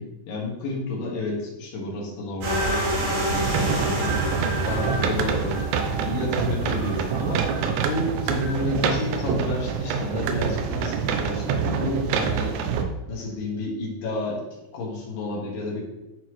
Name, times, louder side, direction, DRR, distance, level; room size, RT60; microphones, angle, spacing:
voice 1, 0.0-4.2 4.6-7.5 7.9-12.6 13.1-14.4 14.7-15.9, left 2 dB, 60° left, -2 dB, 3.0 m, -30 dB
sound 1, 2.4-8.6, right 1 dB, 65° right, 4.7 m, -29 dB
sound 2, 3.3-12.8, right 6 dB, 80° right, 2.9 m, -26 dB
11.0 x 4.2 x 3.1 m, 0.99 s
omnidirectional pair, 5.1 m